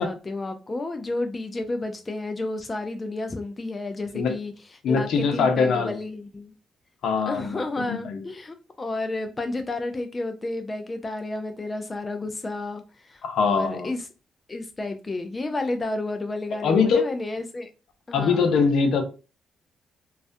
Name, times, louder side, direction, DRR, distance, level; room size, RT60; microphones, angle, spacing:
voice 1, 0.0-4.5 4.9-6.5 7.3-14.0 14.5-17.7 18.1-18.5, left 2 dB, 25° left, 0.3 m, -31 dB
voice 2, 4.8-5.9 7.0-8.2 13.2-13.9 16.6-17.1 18.1-19.0, left 5 dB, 75° left, 0.5 m, -22 dB
2.3 x 2.1 x 2.6 m
cardioid pair, 90°, 0 cm